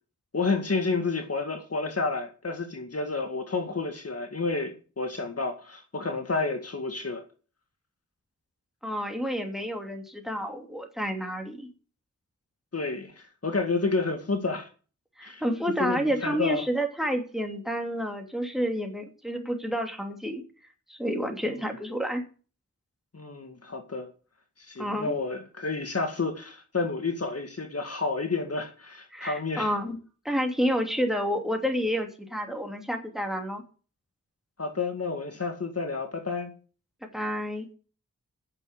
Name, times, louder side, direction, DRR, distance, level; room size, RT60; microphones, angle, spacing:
voice 1, 0.3-7.2 12.7-14.7 15.2-15.4 15.8-16.7 23.1-24.1 24.6-29.7 34.6-36.5, left 3 dB, 50° left, 2.0 m, -30 dB
voice 2, 8.8-11.7 15.2-20.4 20.9-22.2 24.8-25.1 29.1-30.0 30.2-33.6 37.1-37.7, equal, ahead, 2.9 m, -29 dB
9.7 x 7.3 x 8.2 m
wide cardioid pair, 75°, 30 cm